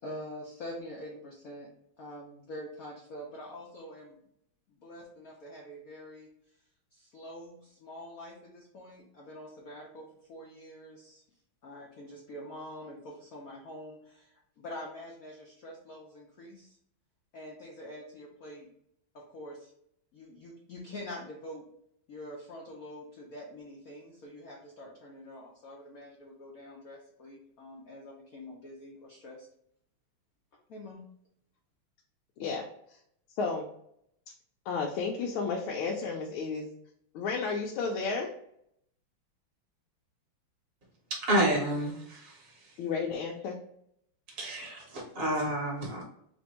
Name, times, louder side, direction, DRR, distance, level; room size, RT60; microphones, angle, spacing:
voice 1, 0.0-1.7 2.0-4.2 4.7-6.3 6.9-11.2 11.6-16.8 17.3-18.7 19.1-19.7 20.1-21.6 22.1-29.5 30.7-31.1, left 1 dB, 65° left, -2 dB, 0.9 m, -45 dB
voice 2, 34.7-36.7 37.1-38.3 42.8-43.6, left 4 dB, 85° left, -1 dB, 1.5 m, -32 dB
voice 3, 41.1-42.5 44.4-46.0, right 1 dB, 35° right, -1 dB, 1.1 m, -30 dB
3.5 x 2.6 x 4.2 m, 0.72 s
omnidirectional pair, 2.3 m